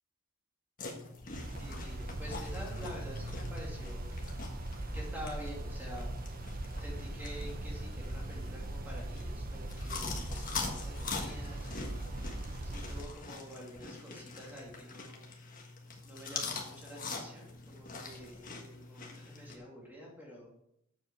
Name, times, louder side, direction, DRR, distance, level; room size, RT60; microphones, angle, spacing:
sound 1, 0.8-19.6, left 4 dB, 40° left, 1.5 m, -44 dB
sound 2, 1.3-13.0, right 1 dB, 40° right, 0.9 m, -40 dB
voice 1, 1.6-4.2 4.9-6.2 6.8-12.0 12.6-15.3 16.0-20.5, equal, 10° right, -3 dB, 2.7 m, -48 dB
8.0 x 7.4 x 4.8 m, 0.75 s
head